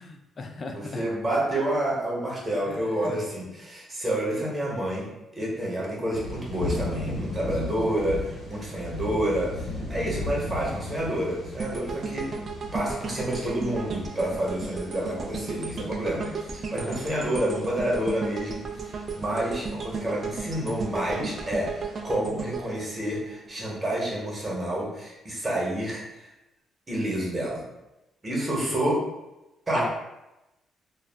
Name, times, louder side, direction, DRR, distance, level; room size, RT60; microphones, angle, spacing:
voice 1, 0.0-1.1 2.7-3.3 16.8-17.1 29.7-29.9, left 3 dB, 40° left, 4 dB, 0.4 m, -37 dB
voice 2, 0.7-12.3 12.7-26.3 26.9-27.6 28.2-29.0 29.7-29.9, right 1 dB, 25° right, -4 dB, 1.0 m, -29 dB
sound 1, 6.1-22.2, left 1 dB, 70° left, 1.0 m, -38 dB
sound 2, 11.6-23.8 24.2-24.3, right 4 dB, 45° right, 0.3 m, -35 dB
2.3 x 2.0 x 3.3 m, 0.96 s
cardioid pair, 90°, 0 cm